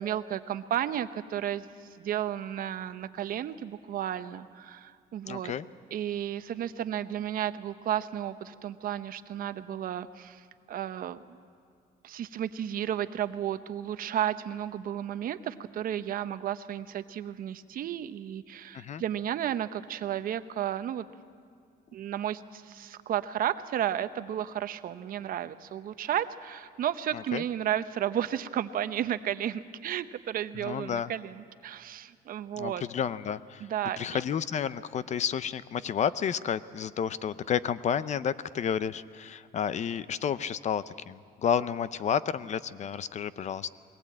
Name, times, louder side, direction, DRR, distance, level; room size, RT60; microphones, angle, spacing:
voice 1, 0.0-5.5 5.9-11.2 12.0-21.1 21.9-32.8 33.6-34.2, right 10 dB, 55° right, 12 dB, 0.8 m, -33 dB
voice 2, 5.3-5.7 18.7-19.0 27.1-27.4 30.6-31.1 32.6-33.7 34.0-43.7, left 8 dB, 45° left, 16 dB, 0.6 m, -31 dB
21.5 x 19.0 x 8.7 m, 2.2 s
cardioid pair, 110°, 17 cm